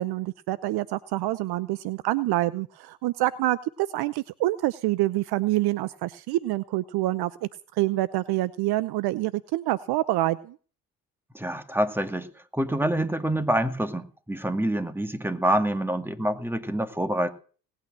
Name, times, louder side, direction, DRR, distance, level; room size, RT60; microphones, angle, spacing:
voice 1, 0.0-10.6, right 17 dB, 55° right, 18 dB, 0.8 m, -27 dB
voice 2, 11.3-12.3 12.5-17.3, right 1 dB, 5° right, 8 dB, 2.3 m, -26 dB
18.5 x 9.0 x 7.7 m, 0.40 s
hypercardioid pair, 55°, 47 cm